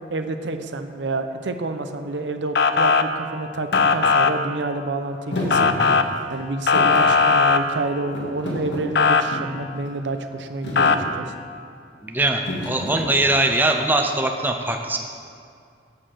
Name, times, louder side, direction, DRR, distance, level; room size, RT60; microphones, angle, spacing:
voice 1, 0.1-5.7 6.3-11.3, right 2 dB, 85° right, 8 dB, 0.6 m, -29 dB
Motor vehicle (road) / Siren, 2.6-3.0 3.7-4.3 5.5-6.0 6.7-7.6 9.0-9.2 10.8-11.0, left 5 dB, 65° left, 0.5 m, -17 dB
Thump thud, 3.7-3.9 5.3-6.4 6.7-7.7 8.1-9.6 10.2-10.4 10.6-11.0 12.5-13.5, left 1 dB, 85° left, 1.8 m, -30 dB
voice 2, 12.0-15.0, right 2 dB, 10° right, 3 dB, 0.5 m, -21 dB
8.6 x 6.4 x 7.7 m, 2.3 s
head